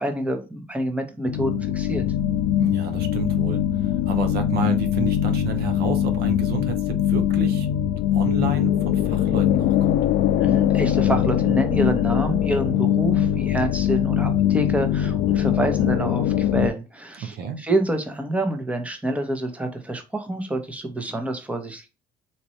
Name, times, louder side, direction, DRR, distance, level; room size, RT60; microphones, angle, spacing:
voice 1, 0.0-2.0 10.4-21.9, right 1 dB, 10° right, 5 dB, 0.9 m, -27 dB
sound 1, 1.3-16.7, left 11 dB, 70° left, 0.4 m, -22 dB
voice 2, 2.6-7.7 8.1-10.0 17.2-17.6, right 6 dB, 70° right, 8 dB, 0.8 m, -31 dB
4.2 x 2.5 x 3.0 m, 0.30 s
cardioid pair, 110°, 17 cm